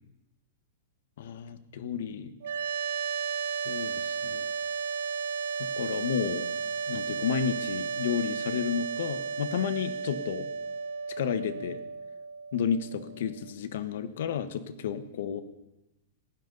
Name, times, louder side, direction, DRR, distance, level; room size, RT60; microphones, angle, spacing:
voice 1, 1.2-2.3 3.6-4.5 5.6-6.5 6.9-10.5 11.2-11.8 12.5-15.4, left 7 dB, 55° left, 11 dB, 1.2 m, -32 dB
sound 1, 2.4-13.5, right 5 dB, 65° right, 0.8 m, -34 dB
19.0 x 16.5 x 4.0 m, 0.96 s
supercardioid pair, 180°, 0 cm